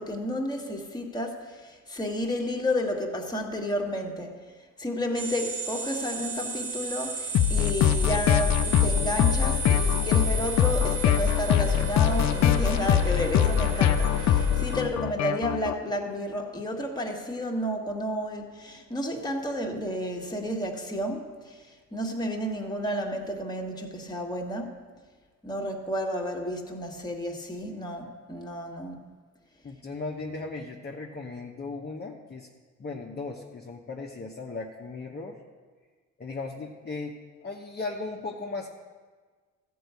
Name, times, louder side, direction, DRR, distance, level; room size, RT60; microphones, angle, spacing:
voice 1, 0.0-4.4 4.8-21.7 21.9-24.8 25.4-28.9, equal, 15° left, 1 dB, 1.5 m, -31 dB
sound 1, 5.2-14.8, right 4 dB, 80° right, 2.9 m, -34 dB
sound 2, 7.3-15.7, left 10 dB, 65° left, 0.6 m, -23 dB
voice 2, 29.6-32.5 32.8-35.4 36.2-37.1 37.4-38.7, left 3 dB, 35° left, -2 dB, 1.0 m, -37 dB
13.5 x 4.7 x 8.2 m, 1.5 s
cardioid pair, 90°, 30 cm